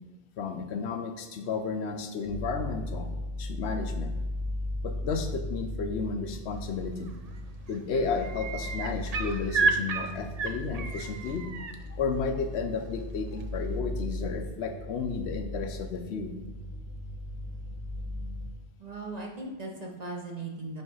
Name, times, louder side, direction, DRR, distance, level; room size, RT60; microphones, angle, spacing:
voice 1, 0.4-3.1 3.4-4.1 4.8-7.1 7.7-16.3, left 5 dB, 70° left, 6 dB, 0.8 m, -33 dB
sound 1, 2.2-18.5, left 1 dB, 30° left, 1.0 m, -37 dB
sound 2, 7.0-7.4 7.7-11.7 13.4-13.5, right 4 dB, 55° right, 0.4 m, -31 dB
voice 2, 18.8-20.8, right 2 dB, 40° right, 0 dB, 0.8 m, -38 dB
5.3 x 3.4 x 5.4 m, 1.2 s
omnidirectional pair, 1.2 m